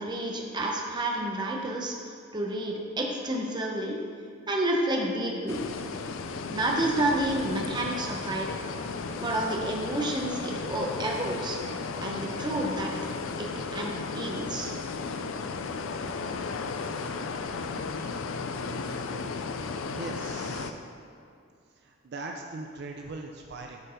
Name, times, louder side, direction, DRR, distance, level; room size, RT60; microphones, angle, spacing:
voice 1, 0.0-2.0 2.3-4.0 4.5-5.6 6.5-8.6 9.2-11.6 12.0-12.9 13.4-14.7, right 1 dB, 20° right, 0 dB, 0.9 m, -30 dB
sound 1, 5.5-20.7, left 4 dB, 85° left, 0.5 m, -34 dB
voice 2, 19.9-20.7 21.8-23.8, right 2 dB, 55° right, 2 dB, 0.5 m, -40 dB
8.2 x 4.6 x 5.1 m, 2.4 s
head